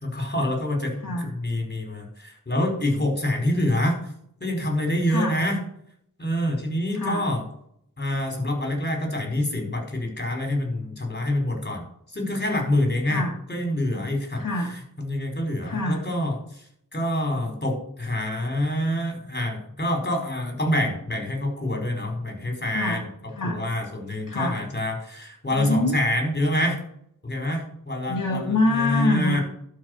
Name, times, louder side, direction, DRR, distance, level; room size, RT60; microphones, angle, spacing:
voice 1, 0.0-4.0 4.4-5.6 6.2-7.4 8.0-11.8 12.1-13.2 13.5-14.4 15.0-16.6 16.9-23.0 23.4-26.8 27.2-29.4, left 1 dB, 30° left, 2 dB, 4.8 m, -26 dB
voice 2, 1.0-1.3 5.1-5.4 6.9-7.3 13.1-13.4 14.4-14.8 15.6-16.0 22.7-23.6 24.3-24.6 25.5-26.0 28.1-29.4, left 2 dB, 70° left, 0 dB, 1.9 m, -26 dB
12.0 x 5.6 x 6.8 m, 0.67 s
wide cardioid pair, 65°, 33 cm